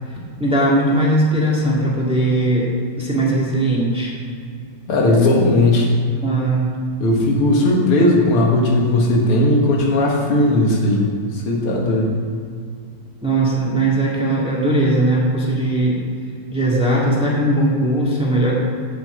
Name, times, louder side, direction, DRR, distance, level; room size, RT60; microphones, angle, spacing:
voice 1, 0.4-2.7 3.0-4.1 6.2-6.7 13.2-16.0 16.5-18.6, right 1 dB, 5° right, -5 dB, 1.6 m, -18 dB
voice 2, 4.9-5.9 7.0-11.1 11.5-12.2, left 1 dB, 90° left, -1 dB, 2.4 m, -16 dB
8.0 x 5.8 x 7.7 m, 2.2 s
omnidirectional pair, 2.4 m